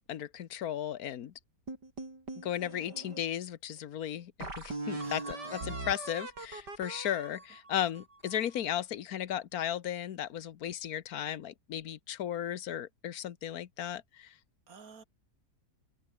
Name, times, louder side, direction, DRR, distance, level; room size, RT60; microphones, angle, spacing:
voice 1, 0.1-1.3 2.3-14.3, left 10 dB, 65° left, 1.5 m, -35 dB
sound 1, 1.7-3.2 3.8-3.9 4.4-8.6, right 2 dB, 80° right, 7.0 m, -41 dB
voice 2, 5.0-5.6 14.7-15.0, right 5 dB, 55° right, 3.1 m, -52 dB
open air
omnidirectional pair, 1.8 m